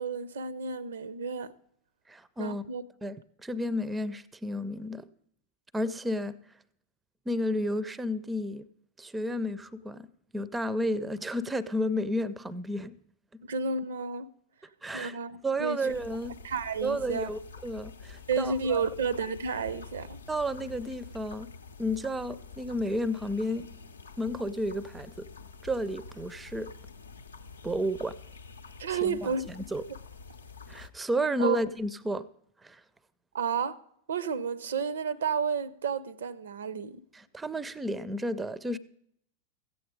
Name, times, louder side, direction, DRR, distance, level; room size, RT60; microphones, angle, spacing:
voice 1, 0.0-1.5 2.4-2.8 13.4-14.3 14.9-15.9 16.4-17.3 18.3-20.2 28.8-29.5 31.4-31.6 33.3-33.8 34.1-37.0, right 5 dB, 65° right, 0.5 m, -31 dB
voice 2, 2.1-2.6 3.0-5.1 5.7-6.4 7.3-8.7 9.0-10.1 10.3-13.0 14.8-15.2 15.4-16.3 16.8-18.8 20.3-21.5 21.8-23.7 24.2-25.3 25.6-26.7 27.6-28.2 29.0-29.8 30.7-32.3 32.6-32.8 37.1-38.8, equal, 10° right, 0.4 m, -32 dB
sound 1, 15.9-30.9, left 4 dB, 75° left, 0.6 m, -47 dB
14.5 x 8.5 x 5.0 m
figure-of-eight pair, 90°, 0 cm